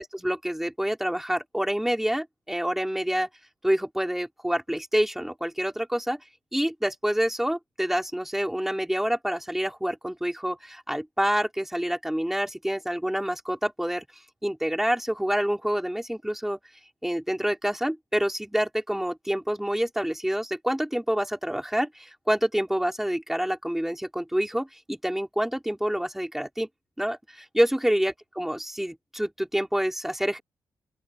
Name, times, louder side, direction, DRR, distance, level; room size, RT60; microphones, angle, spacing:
voice 1, 0.0-3.3 3.6-6.2 6.5-14.0 14.4-16.6 17.0-26.7 27.0-30.4, equal, 5° right, 4.2 m, -27 dB
open air
wide cardioid pair, 140°, 8 cm